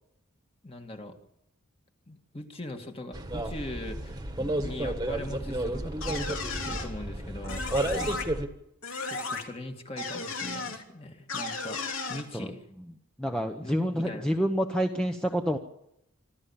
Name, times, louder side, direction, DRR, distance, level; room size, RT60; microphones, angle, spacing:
voice 1, 0.6-1.2 2.1-7.6 9.0-11.8 12.1-12.6 13.6-14.3, left 1 dB, 25° left, 4 dB, 2.1 m, -41 dB
sound 1, 3.1-8.5, right 1 dB, 15° right, 1.6 m, -32 dB
sound 2, 6.0-6.9 7.4-8.2 8.8-9.4 10.0-10.8 11.3-12.2, left 3 dB, 65° left, 3.2 m, -34 dB
voice 2, 13.2-15.6, equal, 5° left, 4 dB, 1.0 m, -28 dB
25.5 x 14.0 x 7.2 m, 0.81 s
head